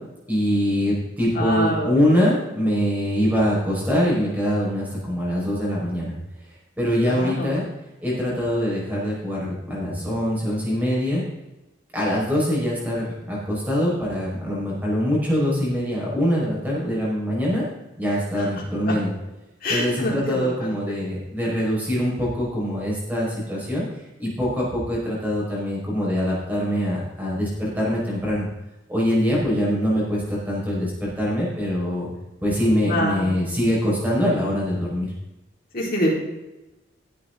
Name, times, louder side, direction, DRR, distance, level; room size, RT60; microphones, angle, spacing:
voice 1, 0.3-6.1 6.8-7.6 8.0-11.2 11.9-17.6 18.0-19.1 19.7-23.8 24.2-28.5 28.9-32.1 32.4-35.1, equal, 10° right, -6 dB, 5.2 m, -23 dB
voice 2, 1.3-2.0 7.1-7.6 18.9-19.0 19.6-21.0 32.9-33.3 35.7-36.1, left 1 dB, 45° left, -4 dB, 4.2 m, -25 dB
17.0 x 8.6 x 3.9 m, 1.0 s
head